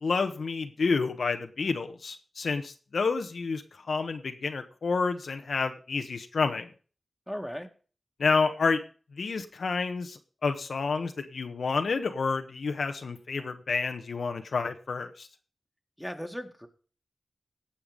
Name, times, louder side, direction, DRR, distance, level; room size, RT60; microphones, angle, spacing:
voice 1, 0.0-3.6 3.9-6.7 8.2-8.8 9.2-15.3, left 4 dB, 80° left, 6 dB, 1.3 m, -29 dB
voice 2, 7.3-7.7 16.0-16.7, equal, ahead, 4 dB, 2.1 m, -36 dB
17.5 x 6.0 x 5.2 m, 0.38 s
cardioid pair, 50°, 0 cm